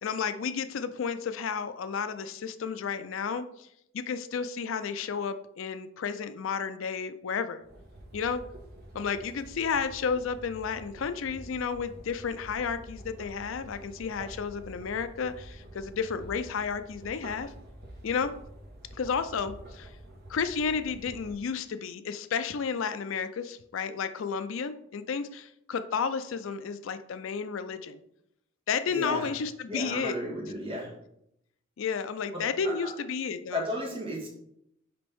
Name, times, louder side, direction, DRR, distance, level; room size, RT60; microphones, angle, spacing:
voice 1, 0.0-3.7 3.9-7.6 8.1-8.4 8.9-17.5 18.0-18.3 18.9-19.9 20.3-28.0 28.7-30.2 31.8-33.6, left 6 dB, 75° left, 11 dB, 0.4 m, -32 dB
sound 1, 7.6-21.3, right 1 dB, 50° right, 1.4 m, -47 dB
voice 2, 28.9-29.3 29.7-30.9 32.3-32.9 33.5-34.3, left 1 dB, 25° right, -3 dB, 1.7 m, -34 dB
5.8 x 5.2 x 3.5 m, 0.76 s
head